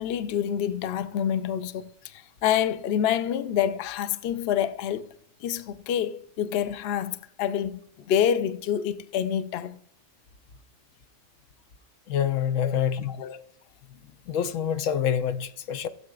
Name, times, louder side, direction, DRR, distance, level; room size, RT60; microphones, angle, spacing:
voice 1, 0.0-5.1 5.4-7.8 8.1-9.8 12.6-13.4, left 9 dB, 60° left, 0.8 m, -27 dB
voice 2, 12.1-13.2 14.3-15.9, left 8 dB, 90° left, 1.0 m, -26 dB
16.0 x 7.6 x 2.4 m
omnidirectional pair, 1.3 m